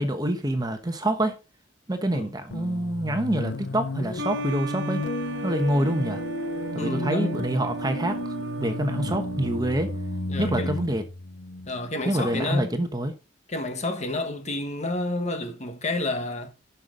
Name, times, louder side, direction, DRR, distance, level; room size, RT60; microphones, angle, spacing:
voice 1, 0.0-1.4 1.9-5.0 5.4-6.2 6.7-8.2 8.6-9.9 10.4-11.0 12.0-13.1, right 1 dB, 20° right, 1.1 m, -26 dB
sound 1, 2.5-12.4, left 3 dB, 75° left, 0.7 m, -33 dB
sound 2, 4.2-10.5, right 6 dB, 75° right, 0.7 m, -35 dB
voice 2, 6.8-7.4 10.3-10.7 11.7-12.7 13.5-16.5, left 2 dB, 40° left, 1.4 m, -30 dB
11.5 x 5.8 x 3.9 m
head